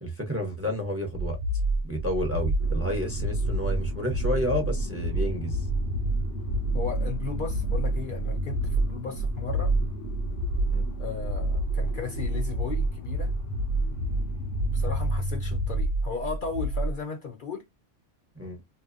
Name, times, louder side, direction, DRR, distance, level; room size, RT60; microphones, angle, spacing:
voice 1, 0.0-1.4 1.8-5.6 10.7-10.8 18.4-18.6, equal, 15° right, 0.6 m, -30 dB
sound 1, 1.1-17.0, right 2 dB, 90° right, 1.0 m, -28 dB
sound 2, 2.6-15.8, left 1 dB, 90° left, 1.0 m, -37 dB
voice 2, 6.7-9.7 11.0-13.3 14.7-17.6, left 6 dB, 55° left, 0.7 m, -35 dB
2.8 x 2.1 x 2.4 m
omnidirectional pair, 1.2 m